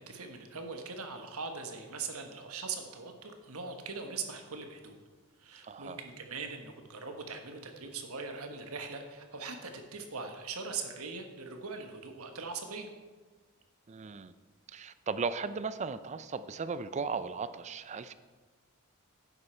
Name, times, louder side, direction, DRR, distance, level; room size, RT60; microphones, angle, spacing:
voice 1, 0.0-4.9 5.4-12.9, right 4 dB, 75° right, 5 dB, 1.3 m, -41 dB
voice 2, 5.6-6.0 13.9-14.3 14.7-18.1, right 5 dB, 30° right, 13 dB, 0.4 m, -36 dB
10.0 x 8.1 x 4.4 m, 1.4 s
head